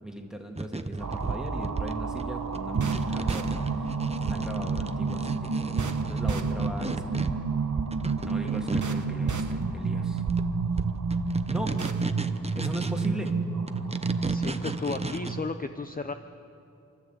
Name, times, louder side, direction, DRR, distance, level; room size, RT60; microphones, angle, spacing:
voice 1, 0.0-3.9 4.2-5.6 6.1-7.1 8.2-10.2 11.5-11.8 12.5-13.4, equal, ahead, 2 dB, 2.1 m, -37 dB
sound 1, 0.6-9.0 9.4-9.9 10.2-13.3 13.7-15.3, right 2 dB, 20° right, 0.8 m, -36 dB
sound 2, 1.0-15.4, right 4 dB, 75° right, 1.2 m, -29 dB
voice 2, 14.3-16.1, left 3 dB, 30° left, 8 dB, 0.6 m, -33 dB
28.5 x 12.5 x 8.2 m, 2.8 s
wide cardioid pair, 85°, 30 cm